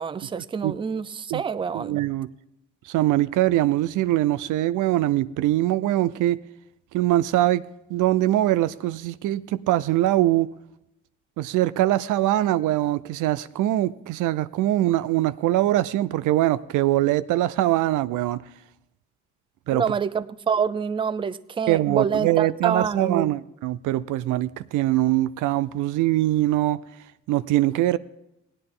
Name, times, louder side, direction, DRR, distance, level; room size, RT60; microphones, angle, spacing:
voice 1, 0.0-2.0 19.7-23.3, right 6 dB, 15° right, 0.4 m, -26 dB
voice 2, 1.7-2.3 2.9-6.4 6.9-7.6 7.9-10.5 11.4-18.4 19.7-19.8 21.7-26.8 27.3-28.0, right 15 dB, 85° right, 0.5 m, -22 dB
17.0 x 9.9 x 3.8 m
cardioid pair, 90°, 30 cm